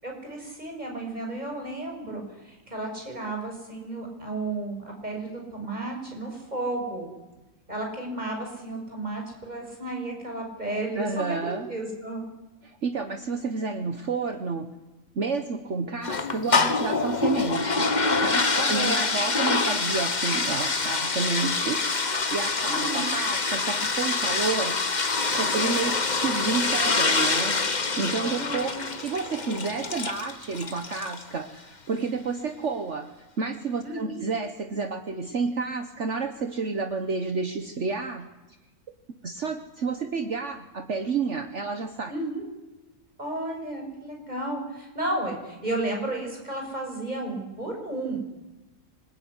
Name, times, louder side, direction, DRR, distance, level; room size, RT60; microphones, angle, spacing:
voice 1, 0.0-7.1 7.7-12.3 18.5-19.0 22.6-23.1 28.2-28.8 33.8-34.2 42.1-42.4 43.2-48.2, right 2 dB, 30° right, 1 dB, 6.5 m, -33 dB
voice 2, 10.9-11.7 12.6-14.7 15.1-24.8 25.3-27.6 28.0-28.7 29.0-33.1 33.4-38.3 39.2-42.1, right 4 dB, 50° right, 7 dB, 1.6 m, -30 dB
sound 1, 16.0-31.3, left 4 dB, 30° left, 1.4 m, -26 dB
26.0 x 21.5 x 9.8 m, 1.1 s
omnidirectional pair, 1.6 m